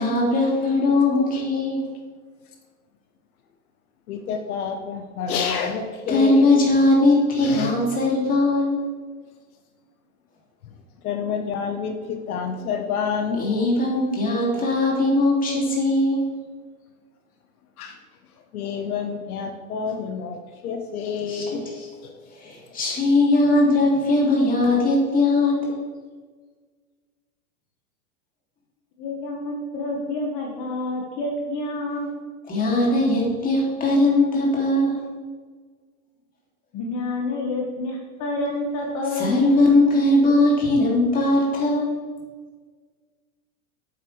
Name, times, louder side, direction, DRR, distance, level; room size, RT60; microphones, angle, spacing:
voice 1, 0.0-1.8 6.1-8.8 13.4-16.2 21.3-21.4 21.8-21.9 22.4-25.8 32.5-35.0 39.1-41.9, left 2 dB, 20° left, -3 dB, 2.7 m, -20 dB
voice 2, 4.1-6.5 7.4-7.7 11.0-13.5 17.8-18.0 18.5-20.4 20.6-21.7 22.0-22.1, left 6 dB, 80° left, 5 dB, 1.1 m, -28 dB
voice 3, 29.0-32.1 36.7-39.4, left 2 dB, 45° left, 0 dB, 1.6 m, -28 dB
9.0 x 8.1 x 3.3 m, 1.5 s
supercardioid pair, 125°, 44 cm